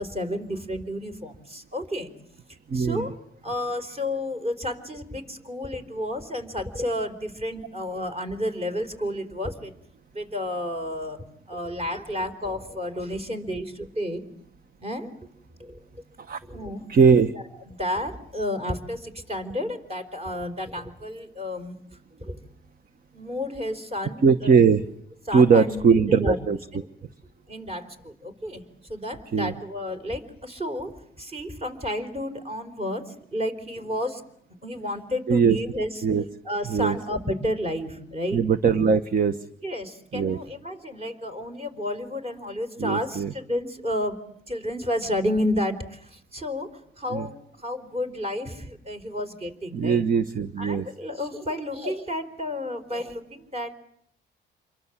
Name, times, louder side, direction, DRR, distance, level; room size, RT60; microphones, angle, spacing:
voice 1, 0.0-2.1 2.7-3.1 3.4-9.7 10.1-14.2 14.8-15.1 15.6-15.8 16.5-16.9 17.7-21.8 22.2-22.4 23.1-24.5 25.3-26.4 26.7-26.9 27.5-28.6 28.9-34.2 34.6-35.9 36.4-38.4 39.6-44.2 44.5-46.7 47.0-47.3 47.6-50.0 50.6-53.7, left 1 dB, 30° right, 6 dB, 4.4 m, -31 dB
voice 2, 2.7-3.1 16.2-16.4 16.9-17.3 24.2-24.8 25.3-26.6 29.3-29.5 35.3-35.6 36.0-36.2 36.7-36.9 38.3-39.4 40.1-40.4 42.8-43.3 47.1-47.3 49.7-50.9, right 5 dB, 45° right, 11 dB, 1.1 m, -20 dB
28.0 x 23.0 x 7.4 m, 0.71 s
cardioid pair, 90°, 20 cm